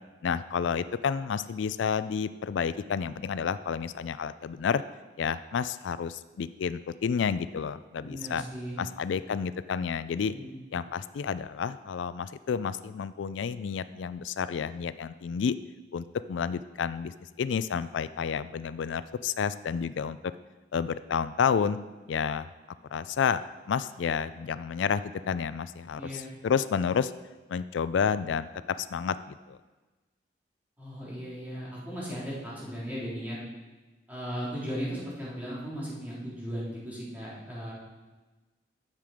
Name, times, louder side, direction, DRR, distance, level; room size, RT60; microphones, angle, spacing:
voice 1, 0.2-4.8 5.2-8.4 8.8-10.3 10.7-15.5 15.9-20.3 20.7-21.8 22.1-22.5 22.9-23.4 23.7-27.1 27.5-29.6, left 6 dB, 90° left, 14 dB, 0.4 m, -30 dB
voice 2, 8.0-8.8 10.3-10.6 25.9-26.3 30.8-33.4 34.1-37.7, equal, 10° right, -8 dB, 3.3 m, -37 dB
10.5 x 7.6 x 5.0 m, 1.2 s
head